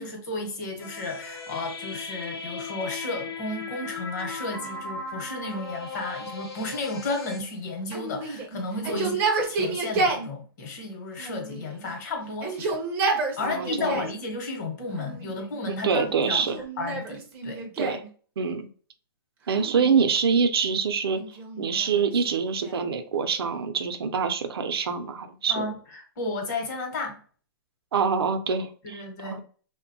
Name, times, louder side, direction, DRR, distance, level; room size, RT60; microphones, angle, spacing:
voice 1, 0.0-12.8 13.4-16.5 16.8-17.6 25.5-27.2 28.8-29.4, left 2 dB, 50° left, 0.9 m, -33 dB
sound 1, 0.8-7.4, left 3 dB, 85° left, 0.8 m, -37 dB
Yell, 7.9-10.3 11.2-11.9 12.3-14.2 14.9-15.6 16.3-18.1 19.5-20.3 21.2-22.9, right 3 dB, 15° right, 0.4 m, -30 dB
voice 2, 13.4-14.0 15.8-16.6 17.8-18.0 18.4-18.7 19.5-21.2 21.6-25.7 27.9-29.4, right 6 dB, 80° right, 0.5 m, -25 dB
2.8 x 2.2 x 2.6 m
hypercardioid pair, 160°, 13 cm